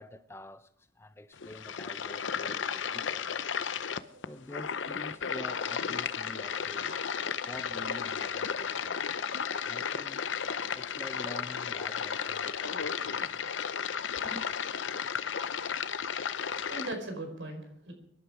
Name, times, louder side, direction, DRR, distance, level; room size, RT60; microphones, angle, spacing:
voice 1, 0.0-3.5 4.2-7.1 7.5-9.2 9.6-10.2 10.7-13.4 14.2-14.5, left 1 dB, 15° left, 0.5 m, -47 dB
sound 1, 1.3-16.9, left 7 dB, 75° left, 0.7 m, -34 dB
voice 2, 6.4-6.7 16.3-17.9, right 2 dB, 75° right, 4.9 m, -41 dB
24.5 x 11.5 x 5.0 m
head